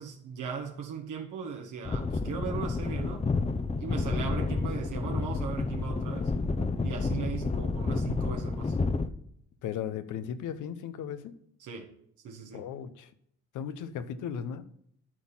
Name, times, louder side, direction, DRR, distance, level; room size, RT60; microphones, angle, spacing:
voice 1, 0.0-3.2 3.8-6.3 6.8-8.8 11.6-11.9 12.2-12.6, right 6 dB, 75° right, 1 dB, 1.5 m, -38 dB
sound 1, 1.8-9.1, left 3 dB, 20° left, 0.7 m, -30 dB
voice 2, 9.6-11.4 12.5-13.1 13.5-14.7, left 8 dB, 85° left, 12 dB, 0.9 m, -36 dB
12.0 x 4.3 x 7.2 m, 0.68 s
cardioid pair, 90°, 30 cm